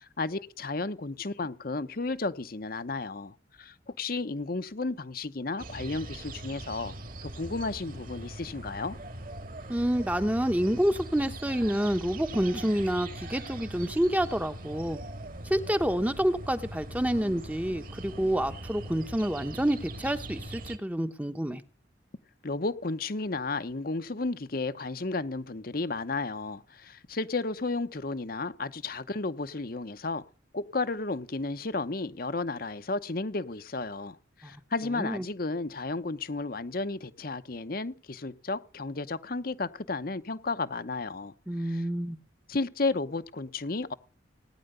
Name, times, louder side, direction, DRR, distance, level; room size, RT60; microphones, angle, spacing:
voice 1, 0.0-6.9 7.2-9.0 22.4-30.2 30.5-41.3 41.6-41.9 42.5-43.9, left 3 dB, 50° left, 0.9 m, -33 dB
sound 1, 5.6-20.8, right 1 dB, 45° right, 2.0 m, -41 dB
voice 2, 9.7-15.0 15.4-21.6 34.4-34.5 34.9-35.2 41.5-42.2, equal, 10° right, 1.0 m, -28 dB
18.5 x 10.0 x 6.8 m
head